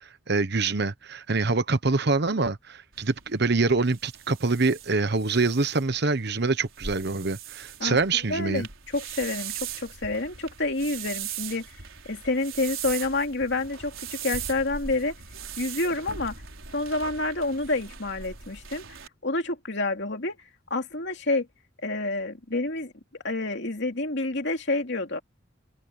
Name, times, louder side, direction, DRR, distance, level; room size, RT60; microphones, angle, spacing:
voice 1, 0.0-8.7, right 3 dB, 55° right, 1.1 m, -25 dB
sound 1, 2.9-19.1, right 8 dB, 80° right, 4.3 m, -40 dB
voice 2, 7.8-8.7 8.9-11.7 12.1-15.1 15.6-16.4 16.7-18.8 19.2-20.4 20.7-21.5 21.8-22.9 23.2-25.2, left 2 dB, 60° left, 2.9 m, -28 dB
head